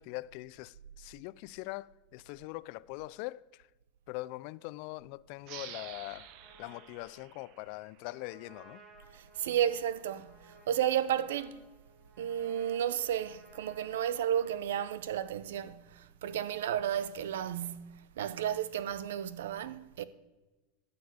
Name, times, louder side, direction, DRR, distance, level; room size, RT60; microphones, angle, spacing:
voice 1, 0.0-3.6 4.1-6.3 6.6-8.8, left 20 dB, 55° left, 0.4 m, -42 dB
sound 1, 5.4-8.7, right 10 dB, 50° right, 1.0 m, -50 dB
Trumpet, 5.7-14.6, right 2 dB, 25° right, 4.2 m, -59 dB
voice 2, 9.1-11.6 12.2-20.0, right 10 dB, 85° right, 0.7 m, -33 dB
13.0 x 6.9 x 7.9 m
supercardioid pair, 140°, 0 cm